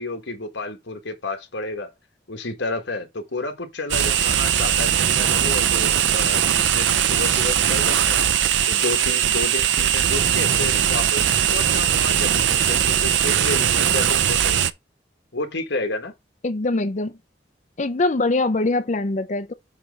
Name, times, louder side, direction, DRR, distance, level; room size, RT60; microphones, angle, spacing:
voice 1, 0.0-1.9 2.3-8.2 8.7-14.7 15.3-16.1, left 2 dB, 75° left, 1.6 m, -31 dB
sound 1, 3.9-14.7, right 9 dB, 80° right, 0.5 m, -20 dB
voice 2, 16.4-17.1 17.8-19.5, left 2 dB, 40° left, 0.6 m, -23 dB
7.3 x 3.3 x 5.1 m
head